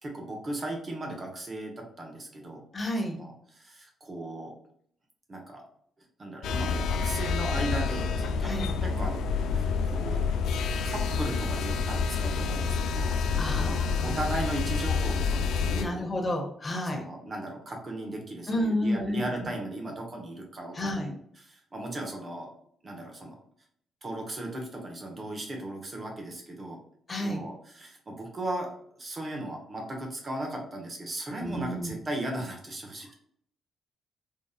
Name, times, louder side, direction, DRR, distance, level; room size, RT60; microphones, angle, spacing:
voice 1, 0.0-2.6 2.9-4.5 5.3-5.6 6.2-8.5 8.8-9.2 9.5-10.2 10.8-13.2 13.4-13.8 14.0-16.1 16.8-22.5 22.8-23.4 24.0-26.8 27.2-33.2, right 1 dB, 40° right, 1 dB, 1.0 m, -37 dB
voice 2, 2.7-3.2 8.4-8.7 13.4-14.2 15.7-17.0 18.5-19.2 20.7-21.1 27.1-27.5 31.4-31.9, left 1 dB, 35° left, 2 dB, 0.8 m, -31 dB
sound 1, 6.4-15.8, left 5 dB, 80° left, 0.3 m, -28 dB
3.7 x 2.5 x 2.3 m, 0.65 s
supercardioid pair, 65°, 0 cm